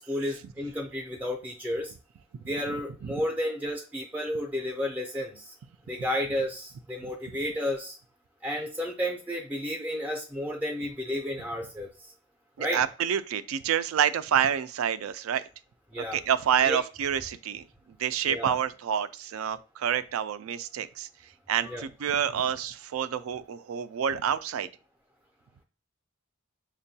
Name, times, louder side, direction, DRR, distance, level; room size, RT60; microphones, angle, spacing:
voice 1, 0.0-1.9 2.5-5.5 5.9-8.0 8.4-12.1 12.6-12.8 15.9-16.2 16.6-16.8 18.3-18.6 21.6-21.9, equal, 10° right, 0.4 m, -32 dB
voice 2, 12.6-15.4 16.0-17.6 18.0-21.1 21.5-24.7, right 9 dB, 80° right, 0.3 m, -28 dB
6.1 x 2.2 x 2.7 m
head